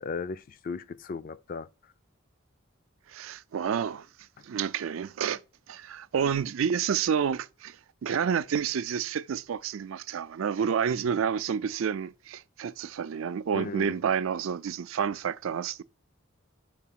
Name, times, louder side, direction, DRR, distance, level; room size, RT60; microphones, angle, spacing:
voice 1, 0.0-1.7 13.5-14.0, left 4 dB, 45° left, 0.3 m, -36 dB
voice 2, 3.1-4.1 4.4-5.4 5.7-7.8 8.0-15.8, right 7 dB, 75° right, 0.4 m, -29 dB
4.9 x 4.6 x 5.7 m
head